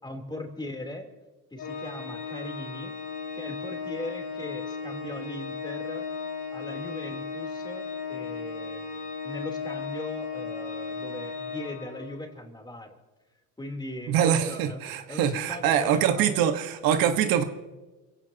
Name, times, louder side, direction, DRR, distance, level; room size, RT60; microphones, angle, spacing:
voice 1, 0.0-1.1 1.5-2.9 3.3-6.0 6.5-13.0 13.6-14.8 15.1-16.5, left 1 dB, 10° left, 3 dB, 3.4 m, -39 dB
Organ, 1.6-12.4, left 5 dB, 70° left, 2.8 m, -36 dB
voice 2, 14.1-17.4, right 9 dB, 75° right, 7 dB, 1.5 m, -24 dB
29.0 x 17.0 x 2.9 m, 1.2 s
cardioid pair, 105°, 35 cm